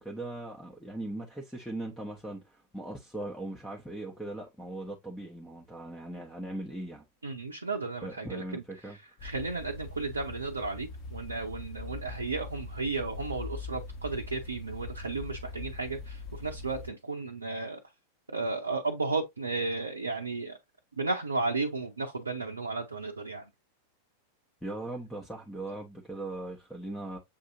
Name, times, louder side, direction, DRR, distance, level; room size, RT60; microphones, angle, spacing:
voice 1, 0.0-7.0 8.0-9.0 24.6-27.2, right 1 dB, 5° left, 0.8 m, -39 dB
voice 2, 7.2-8.6 9.2-17.8 18.3-20.6 21.0-23.4, right 3 dB, 75° right, 0.6 m, -34 dB
sound 1, 9.2-16.9, left 3 dB, 40° left, 1.1 m, -42 dB
7.0 x 2.7 x 2.6 m
figure-of-eight pair, 90°, 0 cm